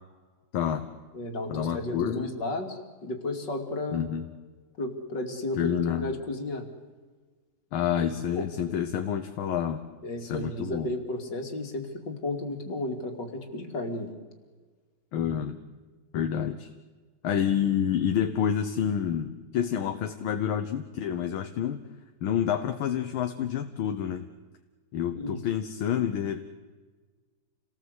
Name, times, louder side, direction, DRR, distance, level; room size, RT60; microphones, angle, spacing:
voice 1, 0.5-0.9 1.5-2.3 3.9-4.3 5.6-6.1 7.7-9.8 10.2-10.9 15.1-15.6 16.1-16.7 17.2-21.8 22.2-24.3 24.9-26.4, left 9 dB, 75° left, 7 dB, 1.9 m, -28 dB
voice 2, 1.1-4.1 4.8-6.7 8.0-8.5 10.0-14.1 25.1-25.4, left 2 dB, 55° left, 4 dB, 3.3 m, -33 dB
28.5 x 18.5 x 8.2 m, 1.4 s
omnidirectional pair, 2.3 m